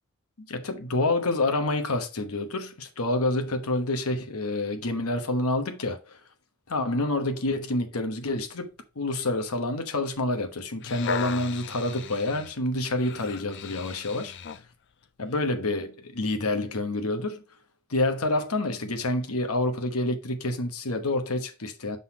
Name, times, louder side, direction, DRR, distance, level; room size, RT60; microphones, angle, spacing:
voice 1, 0.4-6.2 6.7-8.7 8.9-14.4 15.2-17.4 17.9-22.0, left 2 dB, 75° left, 1.1 m, -28 dB
sound 1, 10.6-14.7 15.3-15.4, left 8 dB, 55° left, 0.5 m, -38 dB
5.9 x 4.0 x 4.8 m
head